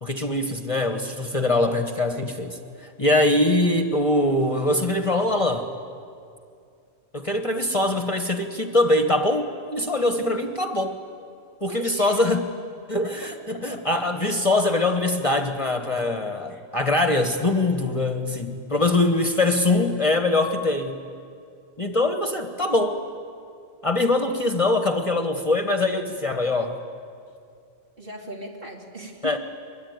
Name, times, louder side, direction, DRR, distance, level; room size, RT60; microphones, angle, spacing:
voice 1, 0.0-5.7 7.1-11.0 11.6-12.4 12.9-21.0 21.8-23.0 23.8-26.8 29.2-29.4, left 2 dB, 30° left, 6 dB, 1.3 m, -23 dB
voice 2, 3.2-3.6 11.7-12.2 13.0-13.8 16.5-16.7 19.4-20.3 22.5-22.6 28.0-29.4, right 1 dB, 50° right, -1 dB, 3.3 m, -39 dB
23.5 x 22.0 x 9.5 m, 2.4 s
omnidirectional pair, 1.2 m